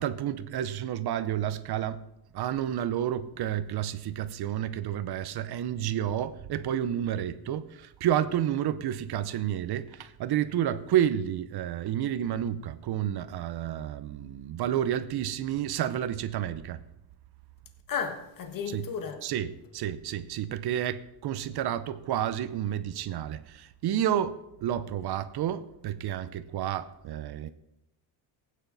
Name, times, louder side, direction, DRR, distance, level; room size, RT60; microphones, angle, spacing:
voice 1, 0.0-2.0 2.3-16.8 18.7-18.9 19.2-27.5, right 10 dB, 55° right, 0.7 m, -30 dB
voice 2, 17.9-19.2, left 6 dB, 45° left, 1.6 m, -33 dB
15.5 x 9.4 x 4.0 m
cardioid pair, 135°, 47 cm